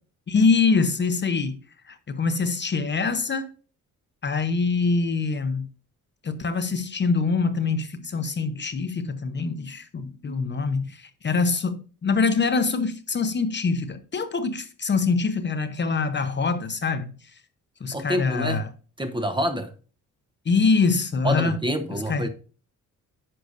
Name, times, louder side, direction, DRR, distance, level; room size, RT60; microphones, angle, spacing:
voice 1, 0.3-1.6 1.9-3.5 4.2-5.7 6.2-17.1 17.8-18.7 20.5-21.6 21.9-22.3, left 4 dB, 35° left, 0.7 m, -24 dB
voice 2, 17.9-18.6 19.0-19.7 21.2-22.3, equal, 15° right, 0.8 m, -27 dB
10.0 x 6.5 x 2.6 m
cardioid pair, 125°, 32 cm